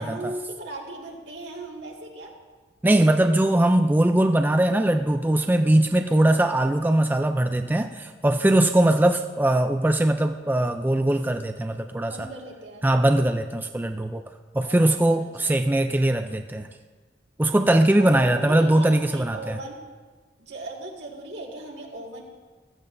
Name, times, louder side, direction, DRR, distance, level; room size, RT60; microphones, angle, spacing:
voice 1, 0.0-2.3 6.1-6.3 9.0-9.1 12.0-12.9 14.6-14.8 15.2-15.5 18.1-19.8 20.4-22.2, right 1 dB, 75° right, -1 dB, 2.0 m, -38 dB
voice 2, 2.8-12.3 12.8-14.2 14.5-16.7 17.4-19.6, right 1 dB, 10° right, 6 dB, 0.3 m, -21 dB
15.0 x 14.0 x 2.6 m, 1.4 s
head